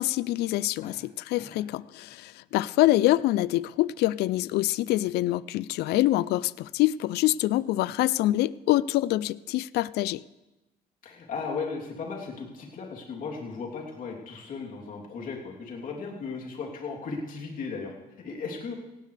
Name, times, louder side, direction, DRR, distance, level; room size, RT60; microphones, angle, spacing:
voice 1, 0.0-10.2, left 16 dB, 75° left, 20 dB, 0.4 m, -25 dB
voice 2, 11.0-17.9 18.2-18.8, left 4 dB, 55° left, -2 dB, 3.1 m, -36 dB
17.5 x 17.0 x 3.3 m, 0.99 s
cardioid pair, 110°, 17 cm